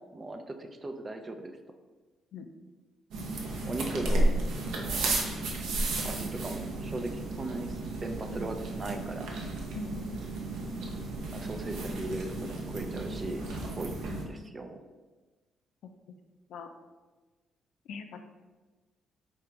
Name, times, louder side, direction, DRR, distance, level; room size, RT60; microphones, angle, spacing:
voice 1, 0.1-1.5 3.6-4.3 4.7-5.2 6.0-9.3 11.3-14.8, right 2 dB, 30° right, 6 dB, 0.4 m, -38 dB
sound 1, 3.1-14.2, right 2 dB, 85° right, 0.7 m, -33 dB
voice 2, 17.9-18.2, left 5 dB, 75° left, 7 dB, 0.4 m, -41 dB
3.5 x 2.9 x 4.5 m, 1.3 s
cardioid pair, 90°, 0 cm